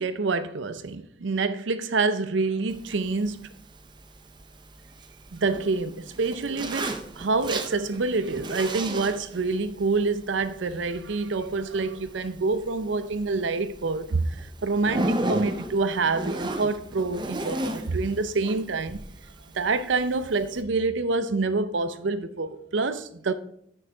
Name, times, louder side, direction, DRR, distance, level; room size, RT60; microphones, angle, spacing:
voice 1, 0.0-3.5 5.3-14.3 14.6-19.0 19.6-23.3, right 3 dB, 75° right, 0.6 m, -27 dB
Zipper (clothing), 2.7-20.6, right 1 dB, 25° right, 0.6 m, -36 dB
6.5 x 5.5 x 4.4 m
head